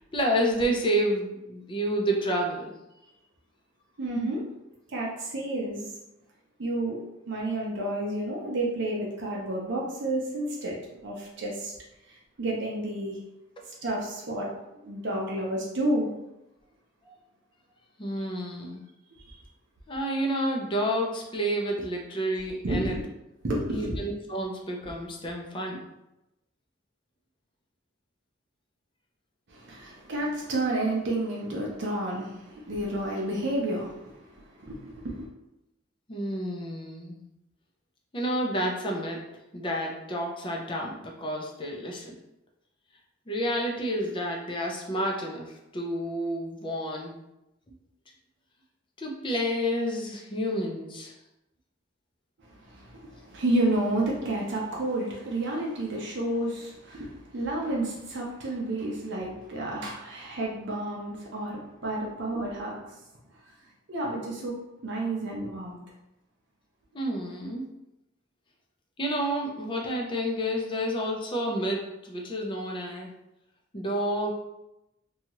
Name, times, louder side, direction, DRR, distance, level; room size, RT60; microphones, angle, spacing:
voice 1, 0.0-2.7 17.1-17.2 18.0-18.8 19.9-23.0 23.7-25.8 36.1-37.2 38.1-39.2 39.5-42.2 43.3-47.1 49.0-51.1 66.9-67.7 69.0-73.1 73.7-74.3, equal, 25° left, 0 dB, 0.5 m, -30 dB
voice 2, 4.0-4.4 4.9-5.8 6.6-7.0 7.3-10.8 11.0-11.7 12.1-13.2 13.8-14.5 14.8-16.1 19.3-19.4 22.6-23.0 23.4-24.0 29.5-35.3 52.6-62.8 63.9-64.5 64.8-65.8, right 1 dB, 60° right, -3 dB, 0.6 m, -30 dB
2.8 x 2.3 x 2.9 m, 0.91 s
head